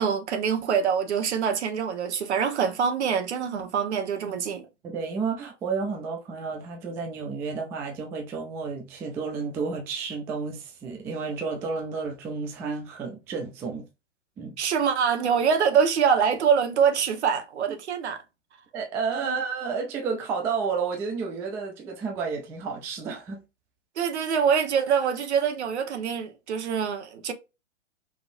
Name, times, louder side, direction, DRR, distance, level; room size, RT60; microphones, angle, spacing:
voice 1, 0.0-4.6 14.6-18.2 19.2-19.3 24.0-27.3, right 7 dB, 65° right, 1.2 m, -24 dB
voice 2, 4.8-13.9 14.4-14.6 18.7-23.4, right 5 dB, 5° right, 0.3 m, -31 dB
5.1 x 3.0 x 2.5 m
hypercardioid pair, 115°, 36 cm